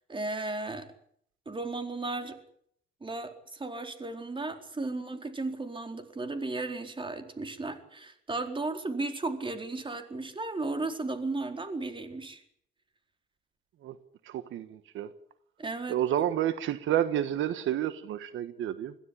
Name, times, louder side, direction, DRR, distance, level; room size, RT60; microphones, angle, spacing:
voice 1, 0.1-0.9 1.5-2.4 3.0-12.4 15.6-16.0, right 3 dB, 25° right, 7 dB, 4.3 m, -35 dB
voice 2, 14.2-15.1 15.9-19.0, right 11 dB, 80° right, 12 dB, 1.4 m, -30 dB
22.5 x 16.0 x 9.9 m, 0.66 s
cardioid pair, 90°, 20 cm